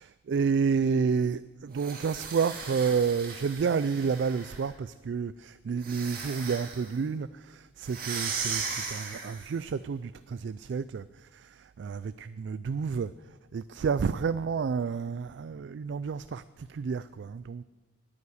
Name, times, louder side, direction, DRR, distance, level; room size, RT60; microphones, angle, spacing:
voice 1, 0.0-13.1 13.5-17.6, right 5 dB, 70° right, 15 dB, 0.3 m, -30 dB
sound 1, 1.7-4.7 5.8-6.9 7.8-9.6, right 5 dB, 50° right, 2.4 m, -37 dB
9.7 x 9.5 x 9.8 m, 1.3 s
head